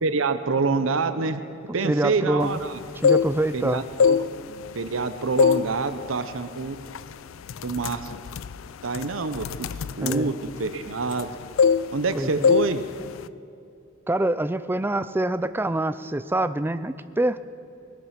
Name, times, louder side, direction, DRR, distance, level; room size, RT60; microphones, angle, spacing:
voice 1, 0.0-1.4 1.7-2.8 3.5-4.2 4.7-6.8 7.6-8.1 8.8-9.7 10.0-11.3 11.9-12.8, right 4 dB, 80° right, 10 dB, 0.8 m, -26 dB
voice 2, 1.8-2.6 3.0-3.8 10.0-10.3 12.1-12.5 14.1-17.4, right 1 dB, 10° right, 13 dB, 0.4 m, -25 dB
sound 1, 2.8-3.6 3.9-5.0 5.4-5.7 6.1-6.3 6.9-7.1 7.4-11.3 11.6-12.1 12.4-12.7 13.0-13.3, left 6 dB, 80° left, 0.4 m, -22 dB
20.5 x 11.5 x 5.9 m, 2.6 s
head